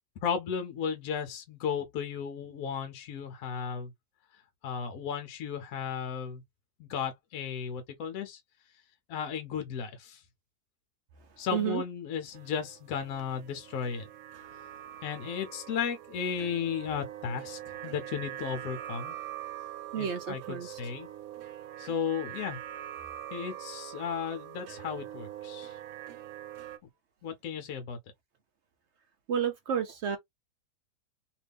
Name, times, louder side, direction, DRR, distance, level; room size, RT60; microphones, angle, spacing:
voice 1, 0.2-3.9 4.6-6.4 6.8-8.4 9.1-10.2 11.4-14.1 15.0-19.2 20.0-21.1 21.8-22.6 23.3-25.7 27.2-28.0, left 7 dB, 65° left, 1.0 m, -35 dB
voice 2, 11.5-11.8 19.9-20.8 29.3-30.2, right 8 dB, 70° right, 0.6 m, -31 dB
sound 1, 12.3-26.8, right 12 dB, 85° right, 1.3 m, -43 dB
2.9 x 2.5 x 3.4 m
omnidirectional pair, 1.8 m